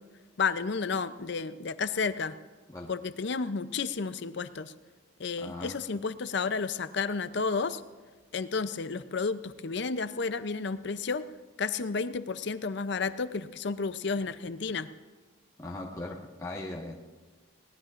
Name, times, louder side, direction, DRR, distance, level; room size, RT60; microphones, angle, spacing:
voice 1, 0.4-2.3 2.9-4.7 5.2-7.8 8.3-11.2 11.6-14.9, left 4 dB, 60° left, 12 dB, 0.6 m, -31 dB
voice 2, 5.4-5.8 15.6-17.0, left 2 dB, 15° left, -4 dB, 1.3 m, -39 dB
22.0 x 18.5 x 2.5 m, 1.3 s
head